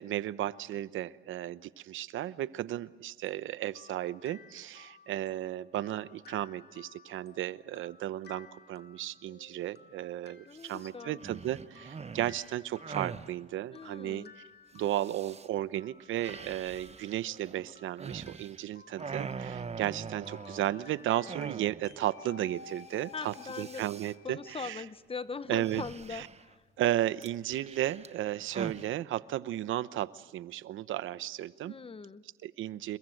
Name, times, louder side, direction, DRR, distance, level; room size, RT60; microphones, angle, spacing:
voice 1, 0.0-14.4 14.7-24.8 25.5-25.8 26.1-26.3 26.8-31.7 32.4-33.0, right 13 dB, 80° right, 16 dB, 0.9 m, -34 dB
sound 1, 3.3-22.1, left 6 dB, 55° left, 2.3 m, -57 dB
voice 2, 10.5-11.2 13.7-14.3 23.1-23.8 24.2-26.6 31.6-32.2, left 4 dB, 30° left, 15 dB, 1.0 m, -41 dB
sound 2, 10.6-10.8 11.2-13.3 14.8-15.5 16.2-18.6 18.9-20.8 21.3-22.0 22.3-22.4 22.7-23.0 23.2-24.1 25.6-26.5 27.2-28.9, right 5 dB, 30° right, 1.0 m, -43 dB
sound 3, 22.1-25.0 25.4-27.8, left 5 dB, 85° left, 5.7 m, -53 dB
28.5 x 22.5 x 7.9 m, 1.3 s
cardioid pair, 90°, 20 cm